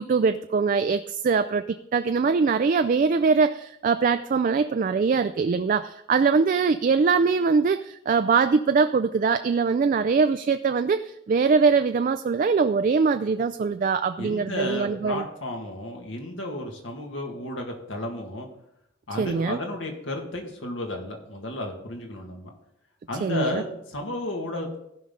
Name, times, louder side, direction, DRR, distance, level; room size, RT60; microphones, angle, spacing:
voice 1, 0.0-15.2 19.2-19.6 23.2-23.6, right 5 dB, 45° right, 9 dB, 0.3 m, -22 dB
voice 2, 14.2-18.5 19.1-22.5 23.1-24.8, left 1 dB, 75° left, 2 dB, 1.9 m, -33 dB
16.0 x 5.5 x 3.8 m, 0.78 s
head